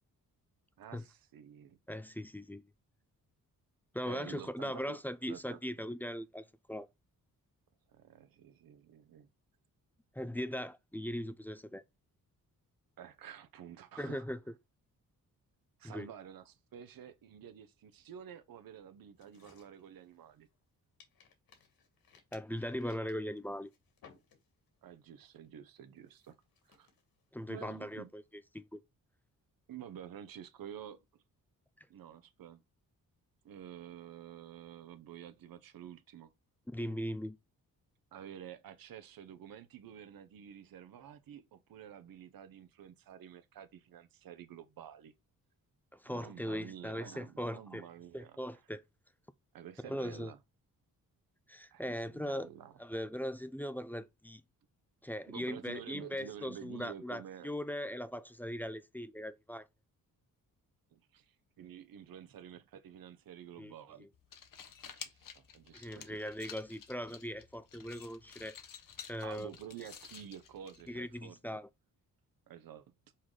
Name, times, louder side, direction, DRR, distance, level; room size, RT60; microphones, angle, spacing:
voice 1, 0.8-1.8 4.0-5.0 5.3-5.6 7.9-9.3 13.0-14.2 15.8-20.5 24.8-26.4 26.6-26.9 27.5-28.1 29.7-31.2 31.9-32.6 33.4-36.3 38.1-45.1 46.1-48.4 49.5-50.4 51.7-52.8 55.3-57.5 60.9-64.1 64.9-66.2 69.2-71.6 72.5-72.8, right 9 dB, 75° right, 1.0 m, -50 dB
voice 2, 1.9-2.6 3.9-6.9 10.1-11.8 14.0-14.4 15.8-16.1 22.3-23.7 27.3-28.2 28.5-28.8 36.7-37.4 45.9-47.9 48.1-48.8 49.8-50.3 51.5-52.5 52.8-54.4 55.0-59.7 63.6-63.7 64.0-64.1 65.7-68.6 69.1-69.5 70.9-71.7, equal, 5° left, 0.6 m, -39 dB
sound 1, 19.1-20.6 21.0-24.8 25.1-25.5 26.0-28.3, left 6 dB, 90° left, 2.0 m, -64 dB
sound 2, 64.1-71.2, left 8 dB, 70° left, 1.2 m, -52 dB
5.7 x 4.3 x 4.9 m
cardioid pair, 110°, 35 cm